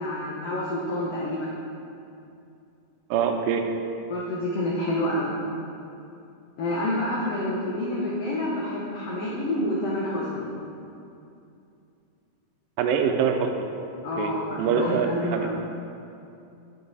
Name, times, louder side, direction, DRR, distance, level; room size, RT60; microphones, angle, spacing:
voice 1, 0.0-1.5 4.1-5.4 6.6-10.5 14.0-15.5, left 1 dB, 85° left, -5 dB, 1.3 m, -28 dB
voice 2, 3.1-3.6 12.8-13.5 14.2-14.3 14.6-15.5, right 7 dB, 80° right, 5 dB, 2.2 m, -24 dB
10.5 x 5.1 x 4.1 m, 2.6 s
omnidirectional pair, 4.1 m